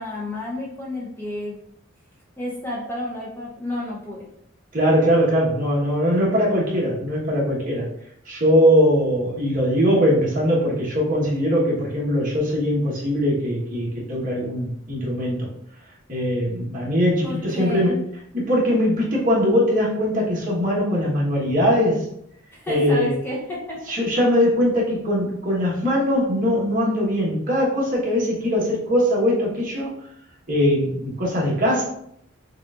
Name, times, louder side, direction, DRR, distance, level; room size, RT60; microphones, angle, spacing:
voice 1, 0.0-1.6 2.4-4.3 17.2-18.0 22.5-23.8, left 1 dB, 10° left, -4 dB, 0.7 m, -30 dB
voice 2, 4.7-7.9 8.2-15.5 16.1-18.0 18.3-22.0 22.7-23.1 23.9-29.9 30.5-31.8, equal, 40° right, -5 dB, 1.2 m, -21 dB
6.2 x 2.5 x 2.4 m, 0.72 s
head